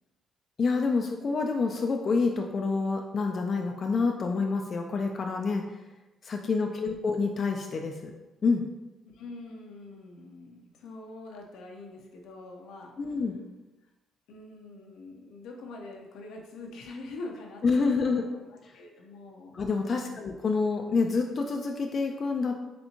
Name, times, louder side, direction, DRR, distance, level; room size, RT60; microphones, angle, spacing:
voice 1, 0.6-5.6 6.2-8.1 8.4-8.6 13.0-13.4 17.6-18.3 18.6-18.7 19.5-22.6, left 4 dB, 45° left, 3 dB, 0.3 m, -27 dB
voice 2, 9.1-12.9 14.3-19.6 20.0-20.3, left 2 dB, 85° left, 1 dB, 0.6 m, -44 dB
4.2 x 3.4 x 2.8 m, 1.1 s
cardioid pair, 90°, 0 cm